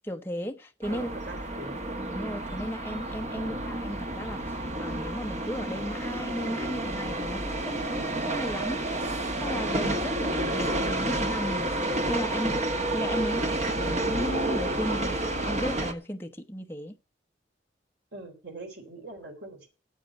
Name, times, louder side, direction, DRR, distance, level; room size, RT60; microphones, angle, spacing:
voice 1, 0.0-1.1 2.1-11.8 12.1-12.6 12.9-15.2 15.5-17.0, equal, 10° left, 0.9 m, -35 dB
sound 1, 0.8-15.9, right 1 dB, 35° right, 1.3 m, -30 dB
voice 2, 0.9-1.8 3.3-3.5 18.1-19.7, right 3 dB, 65° right, 4.0 m, -42 dB
9.1 x 8.0 x 8.1 m
head